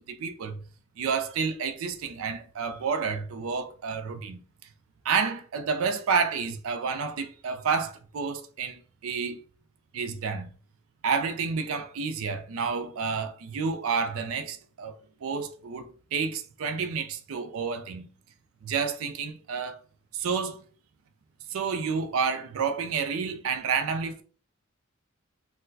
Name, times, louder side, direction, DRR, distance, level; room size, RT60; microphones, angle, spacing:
voice 1, 0.1-0.6 1.0-4.4 5.0-9.4 9.9-10.5 11.0-18.1 18.6-19.8 20.1-20.6 21.5-24.2, right 5 dB, 75° right, 0.4 m, -30 dB
4.1 x 2.1 x 2.6 m
head